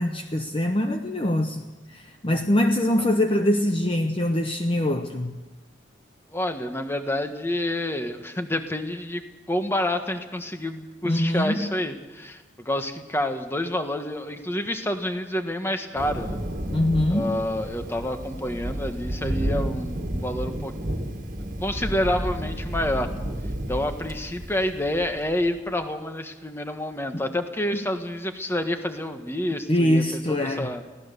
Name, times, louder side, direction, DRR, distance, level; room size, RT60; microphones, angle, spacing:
voice 1, 0.0-1.6 1.9-5.3 11.0-11.7 16.7-17.4 29.7-30.7, left 1 dB, 30° left, 5 dB, 0.9 m, -23 dB
voice 2, 6.3-9.2 9.5-16.4 17.1-20.7 21.4-23.1 23.7-30.8, left 1 dB, 15° left, 6 dB, 1.4 m, -28 dB
Thunder, 15.9-25.6, right 1 dB, 45° right, 1.9 m, -31 dB
23.5 x 16.5 x 6.9 m, 1.2 s
head